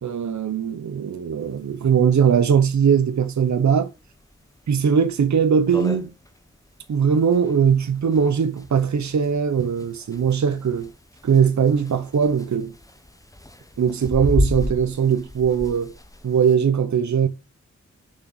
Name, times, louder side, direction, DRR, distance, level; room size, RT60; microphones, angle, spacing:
voice 1, 0.0-3.9 4.7-6.1 6.9-10.9 11.2-12.7 13.8-15.9 16.2-17.3, right 7 dB, 70° right, 0.8 m, -20 dB
sound 1, 1.5-1.6 1.9-2.0 2.3-2.4 3.0-3.2 3.7-3.8 4.3-4.4 4.7-4.8 5.3-5.4 5.5-16.5, left 1 dB, 10° left, 0.8 m, -32 dB
6.4 x 6.1 x 3.9 m
wide cardioid pair, 70°, 29 cm